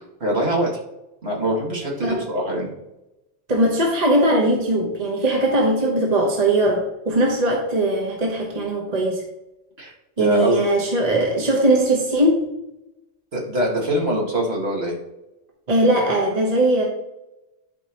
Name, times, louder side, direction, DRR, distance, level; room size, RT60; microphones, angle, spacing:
voice 1, 0.2-0.7 1.2-2.7 9.8-9.9 10.2-10.7 13.3-14.9, right 1 dB, 60° right, -3 dB, 2.2 m, -23 dB
voice 2, 3.5-9.2 10.2-12.5 15.7-16.8, right 1 dB, 35° right, 0 dB, 1.1 m, -20 dB
11.5 x 4.5 x 3.0 m, 0.93 s
omnidirectional pair, 1.2 m